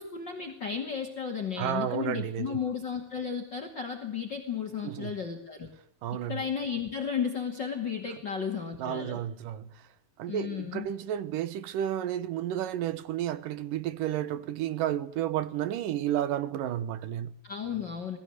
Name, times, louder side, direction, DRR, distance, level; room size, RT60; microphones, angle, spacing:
voice 1, 0.0-5.7 6.3-9.2 10.3-10.9 17.4-18.2, left 7 dB, 35° left, 2.6 m, -34 dB
voice 2, 1.6-2.6 4.8-5.1 6.0-6.4 8.8-9.7 10.2-17.4, right 11 dB, 75° right, 2.7 m, -32 dB
22.5 x 15.5 x 9.5 m
omnidirectional pair, 3.9 m